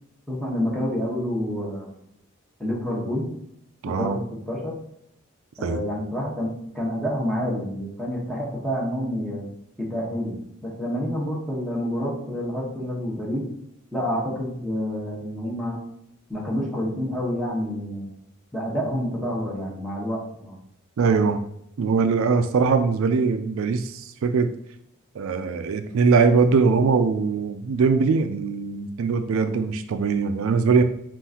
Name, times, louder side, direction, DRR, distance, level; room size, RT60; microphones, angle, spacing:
voice 1, 0.3-2.0 2.6-3.4 3.8-4.7 5.6-9.4 9.8-13.5 13.9-15.8 16.3-18.1 18.5-20.6, equal, ahead, -5 dB, 1.1 m, -28 dB
voice 2, 3.8-4.2 5.6-5.8 21.0-21.4 21.8-24.5 25.1-30.8, right 5 dB, 85° right, 9 dB, 0.4 m, -21 dB
5.6 x 2.5 x 2.8 m, 0.74 s
head